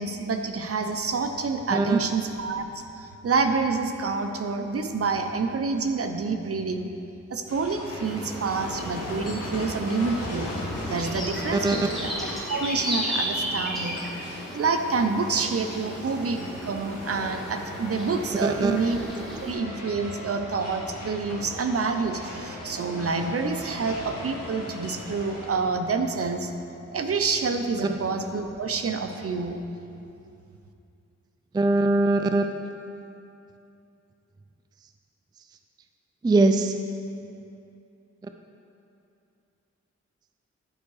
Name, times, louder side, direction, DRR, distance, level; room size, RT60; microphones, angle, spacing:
voice 1, 0.0-6.9 7.3-10.5 10.9-12.1 12.5-14.0 14.5-19.0 19.2-26.5 26.9-29.6, right 4 dB, 50° right, 6 dB, 0.6 m, -28 dB
sound 1, 7.5-25.5, left 1 dB, 55° left, 2.1 m, -38 dB
sound 2, 8.0-19.5, equal, ahead, 1.9 m, -35 dB
voice 2, 11.5-11.9 18.4-18.8 31.5-32.5 36.2-36.8, right 2 dB, 15° right, 6 dB, 0.3 m, -21 dB
11.0 x 4.6 x 4.8 m, 2.7 s
wide cardioid pair, 80°, 29 cm